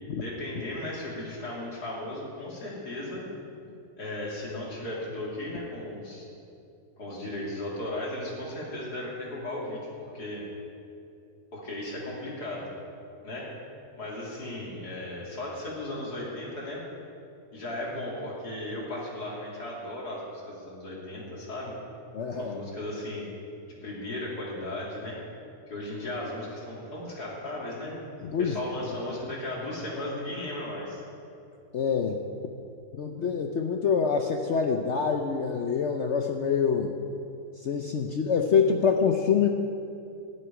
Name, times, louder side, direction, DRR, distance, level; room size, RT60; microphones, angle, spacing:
voice 1, 0.0-3.2 4.0-6.3 7.0-10.4 11.5-12.7 13.2-13.5 14.0-16.8 17.5-21.7 22.4-23.3 23.7-25.2 25.7-27.9 28.4-31.0, left 1 dB, 80° left, -4 dB, 3.4 m, -36 dB
voice 2, 22.1-22.6 28.2-28.6 31.7-32.2 33.0-36.9 37.6-39.5, left 6 dB, 60° left, 4 dB, 0.8 m, -25 dB
13.5 x 6.5 x 9.7 m, 2.6 s
omnidirectional pair, 1.7 m